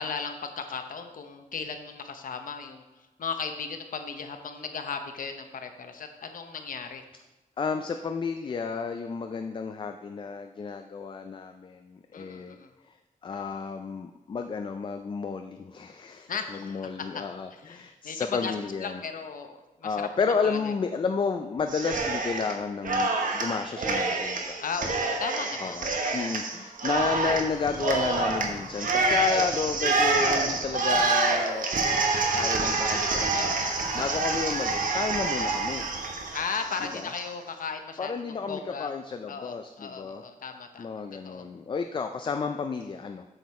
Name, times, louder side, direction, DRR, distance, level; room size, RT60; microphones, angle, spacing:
voice 1, 0.0-2.8 3.2-7.0 12.1-12.7 16.3-17.2 17.5-18.5 18.8-20.1 20.4-20.7 24.6-26.4 33.3-34.2 36.3-38.9 39.3-41.4, left 5 dB, 75° left, 6 dB, 0.8 m, -36 dB
voice 2, 7.6-12.6 12.8-13.0 13.2-19.0 19.8-24.6 25.6-31.7 32.3-33.5 33.9-35.9 36.8-37.1 38.0-40.2 40.8-43.3, left 5 dB, 35° left, 7 dB, 0.4 m, -31 dB
Cheering, 21.7-22.5 22.8-37.2, right 3 dB, 70° right, 1.1 m, -27 dB
7.9 x 6.6 x 4.2 m, 1.1 s
wide cardioid pair, 180°, 14 cm